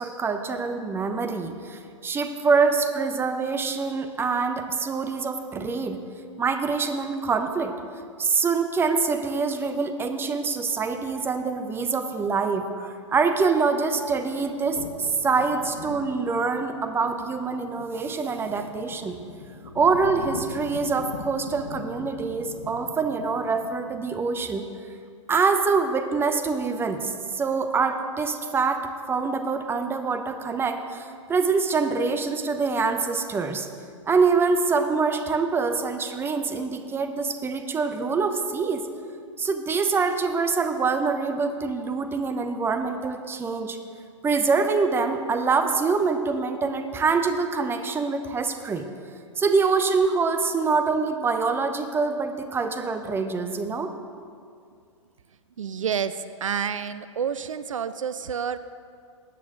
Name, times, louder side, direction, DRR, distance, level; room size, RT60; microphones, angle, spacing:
voice 1, 0.0-6.0 6.4-7.7 8.2-19.2 19.7-24.7 25.3-33.7 34.1-38.8 39.4-43.8 44.2-48.9 49.4-53.9, right 4 dB, 15° right, 7 dB, 0.9 m, -25 dB
sound 1, 13.7-24.1, left 4 dB, 75° left, 1.2 m, -42 dB
voice 2, 55.6-58.6, right 7 dB, 75° right, 13 dB, 0.5 m, -29 dB
20.0 x 8.6 x 3.8 m, 2.3 s
figure-of-eight pair, 110°, 17 cm